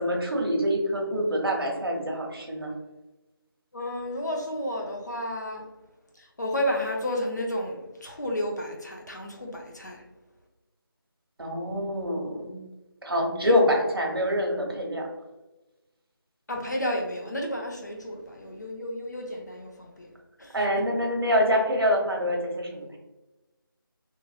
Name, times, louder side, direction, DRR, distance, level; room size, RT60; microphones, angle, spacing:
voice 1, 0.0-2.7 11.4-12.6 13.0-15.1 20.5-23.0, equal, 80° right, 0 dB, 0.9 m, -25 dB
voice 2, 3.7-5.7 6.1-10.0 13.5-13.6 16.5-20.1 20.4-20.6, equal, 50° left, 1 dB, 0.6 m, -32 dB
3.0 x 2.5 x 2.3 m, 1.0 s
figure-of-eight pair, 175°, 12 cm